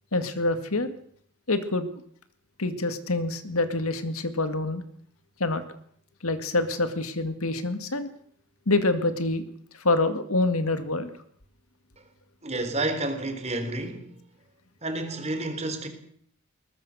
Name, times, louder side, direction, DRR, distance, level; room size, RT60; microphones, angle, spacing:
voice 1, 0.1-0.9 1.5-2.0 2.6-4.8 5.4-5.6 6.2-8.1 8.7-9.4 9.8-11.1, left 2 dB, 80° left, 2.1 m, -26 dB
voice 2, 12.4-14.2 14.8-15.9, right 2 dB, 30° right, 3.7 m, -30 dB
22.0 x 19.5 x 6.5 m
head